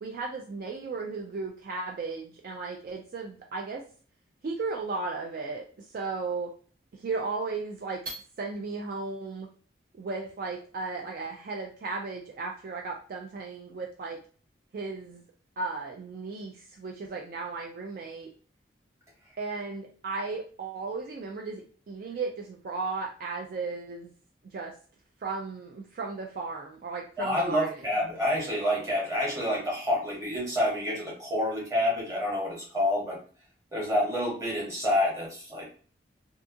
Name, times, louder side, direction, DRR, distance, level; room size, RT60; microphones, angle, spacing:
voice 1, 0.0-3.8 4.4-6.5 6.9-9.5 9.9-14.2 14.7-15.2 15.6-18.3 19.4-24.1 24.4-24.7 25.2-27.8, right 4 dB, 50° right, 1 dB, 0.3 m, -35 dB
voice 2, 27.2-33.2 33.7-35.8, left 1 dB, 15° right, -4 dB, 1.0 m, -28 dB
2.7 x 2.3 x 2.5 m, 0.42 s
head